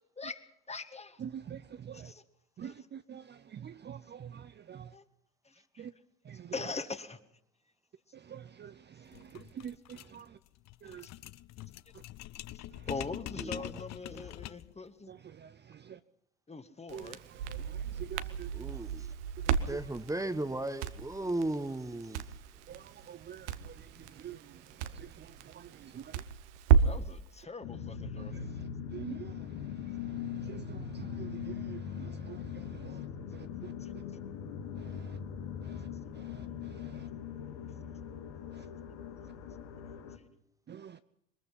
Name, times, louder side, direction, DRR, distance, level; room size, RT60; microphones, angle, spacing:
voice 1, 0.0-1.3 1.9-2.2 2.6-2.9 4.9-5.1 5.4-5.9 6.5-7.2 10.9-11.1 12.5-15.1 16.5-17.2 26.7-28.4 33.8-33.9, left 3 dB, 20° left, 10 dB, 1.8 m, -42 dB
voice 2, 1.2-2.1 2.6-4.9 5.8-5.9 6.3-6.5 8.3-10.3 10.8-11.1 15.1-16.0 16.9-18.5 19.4-19.8 22.7-23.9 24.2-24.6 24.9-26.2 28.3-28.4 28.9-29.4 30.4-33.0 33.3-33.7 34.9-35.1 35.6-35.8 36.2-36.4 36.8-37.1 38.6-38.7 40.7-41.0, right 9 dB, 30° right, 12 dB, 0.7 m, -47 dB
sound 1, 9.1-14.8, left 15 dB, 50° left, 0.7 m, -44 dB
voice 3, 13.4-13.7 14.1-14.3 18.5-19.1 19.7-22.2, right 2 dB, 10° right, 12 dB, 1.4 m, -36 dB
Crackle, 16.9-27.1, right 8 dB, 75° right, 1.1 m, -33 dB
sound 2, 27.6-40.2, left 7 dB, 70° left, 2.1 m, -41 dB
22.5 x 21.5 x 5.6 m, 0.75 s
hypercardioid pair, 65°, 35 cm